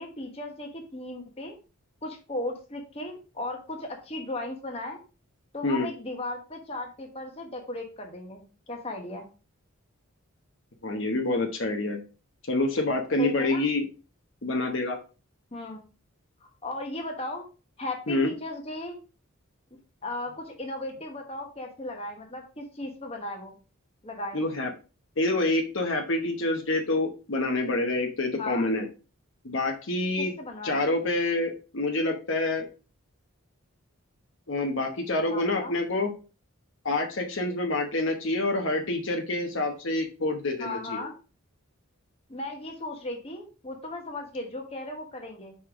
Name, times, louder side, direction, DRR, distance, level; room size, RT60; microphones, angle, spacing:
voice 1, 0.0-1.6 2.0-5.0 5.5-9.3 13.2-13.6 15.5-15.8 16.4-17.5 17.8-19.0 20.0-23.6 24.0-24.4 28.4-28.7 30.2-30.8 35.3-35.7 40.6-41.1 42.3-45.6, left 2 dB, 25° left, 2 dB, 1.1 m, -36 dB
voice 2, 10.8-12.0 12.4-13.9 14.4-15.0 18.1-18.3 24.3-24.7 25.2-28.9 29.4-30.3 30.6-32.7 34.5-36.1 36.8-41.1, left 2 dB, 60° left, 3 dB, 0.9 m, -27 dB
5.5 x 5.0 x 3.6 m, 0.34 s
head